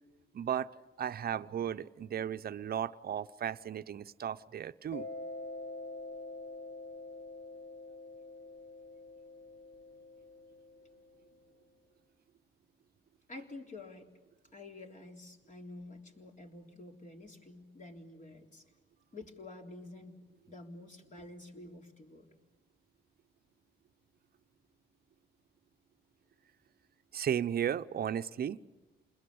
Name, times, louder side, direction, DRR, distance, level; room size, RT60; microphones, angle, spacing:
voice 1, 0.3-5.0 27.1-28.6, right 9 dB, 50° right, 12 dB, 0.8 m, -35 dB
Mallet percussion, 4.9-11.3, left 2 dB, 70° left, 2.4 m, -46 dB
voice 2, 13.3-14.1 14.5-18.6 19.1-20.2 20.5-22.3, left 2 dB, 40° left, 2 dB, 3.7 m, -49 dB
28.5 x 21.5 x 8.6 m, 1.2 s
cardioid pair, 90°, 20 cm